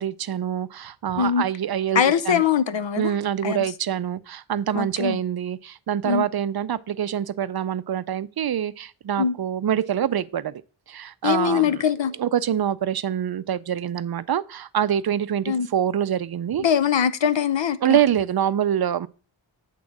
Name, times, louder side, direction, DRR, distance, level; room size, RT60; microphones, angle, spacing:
voice 1, 0.0-2.4 3.0-10.6 10.9-11.8 12.2-16.6 17.8-19.1, right 9 dB, 50° right, 0.5 m, -25 dB
voice 2, 1.9-3.1 3.4-3.6 4.7-5.2 6.0-6.3 9.2-9.4 11.2-12.1 15.5-15.7 16.6-18.0, left 8 dB, 65° left, 0.7 m, -22 dB
8.4 x 3.8 x 5.9 m
wide cardioid pair, 50°, 48 cm